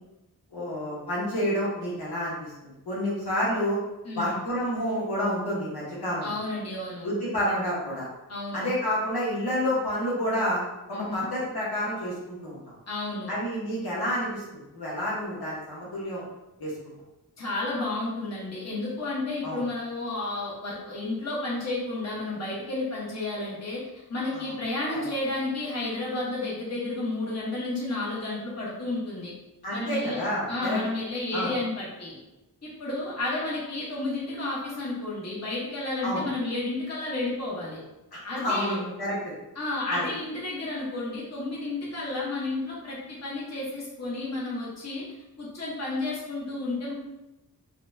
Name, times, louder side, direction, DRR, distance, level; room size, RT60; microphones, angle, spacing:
voice 1, 0.5-3.8 4.1-6.3 7.0-8.1 8.5-10.6 10.9-12.6 13.3-16.2 16.6-16.9 19.4-19.6 24.3-24.5 29.6-30.8 31.3-31.5 36.0-36.2 38.1-39.3 39.9-40.1, equal, 80° left, -7 dB, 1.2 m, -29 dB
voice 2, 4.0-4.4 6.2-7.1 8.3-8.7 10.9-11.3 12.9-13.3 17.4-23.8 24.1-29.3 29.7-30.2 30.5-32.1 32.6-37.8 38.2-38.8 39.5-45.0 45.4-46.9, left 2 dB, 45° left, -6 dB, 1.1 m, -31 dB
4.1 x 2.3 x 2.6 m, 0.98 s
wide cardioid pair, 95°, 37 cm